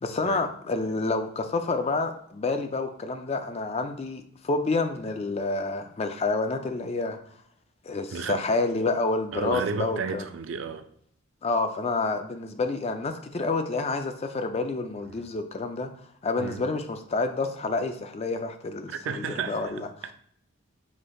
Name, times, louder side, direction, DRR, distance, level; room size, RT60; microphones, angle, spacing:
voice 1, 0.0-7.2 7.8-10.3 11.4-15.9 16.2-19.9, left 3 dB, 30° left, 0.4 m, -28 dB
voice 2, 8.1-8.4 9.3-10.9 15.1-15.3 16.4-16.6 18.9-20.1, right 5 dB, 65° right, 0.4 m, -33 dB
5.1 x 3.8 x 2.3 m
head